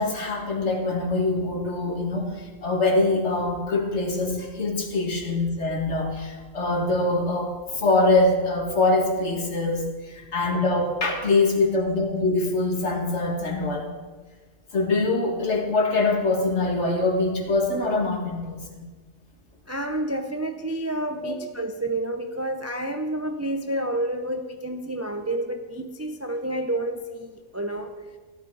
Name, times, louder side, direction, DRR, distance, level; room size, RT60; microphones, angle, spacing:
voice 1, 0.0-13.9 14.7-18.8 21.2-21.3, left 2 dB, 55° left, 2 dB, 2.1 m, -24 dB
voice 2, 19.7-27.9, right 1 dB, 20° right, 6 dB, 0.5 m, -29 dB
15.0 x 11.5 x 4.7 m, 1.3 s
omnidirectional pair, 1.4 m